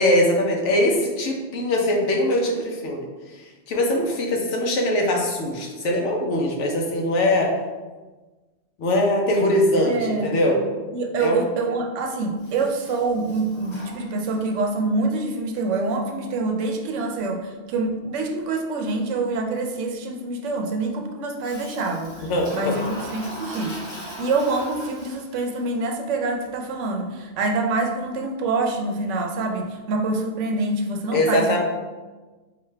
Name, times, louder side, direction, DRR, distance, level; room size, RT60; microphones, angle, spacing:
voice 1, 0.0-7.5 8.8-10.6 11.2-11.4 22.3-22.8 31.1-31.6, left 1 dB, 70° left, 1 dB, 1.1 m, -22 dB
voice 2, 9.8-10.4 10.9-22.3 22.5-31.5, right 3 dB, 75° right, 4 dB, 0.9 m, -26 dB
Toilet flush, 12.4-14.6 21.4-25.5, equal, 25° left, 0.8 m, -39 dB
5.0 x 2.6 x 3.2 m, 1.3 s
omnidirectional pair, 1.3 m